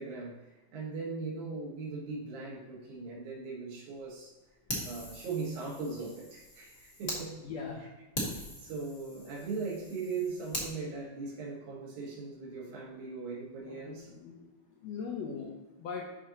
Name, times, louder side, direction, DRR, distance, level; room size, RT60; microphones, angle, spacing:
voice 1, 0.0-4.3 4.8-7.4 8.6-14.1, right 4 dB, 75° right, -5 dB, 2.9 m, -39 dB
Fire, 4.7-7.2 7.7-7.8 8.1-10.7, equal, 20° left, 1.1 m, -41 dB
voice 2, 7.4-7.8 13.6-14.4 14.8-15.5 15.8-16.1, left 5 dB, 70° left, -1 dB, 1.7 m, -40 dB
11.5 x 4.4 x 2.8 m, 1.1 s
omnidirectional pair, 3.6 m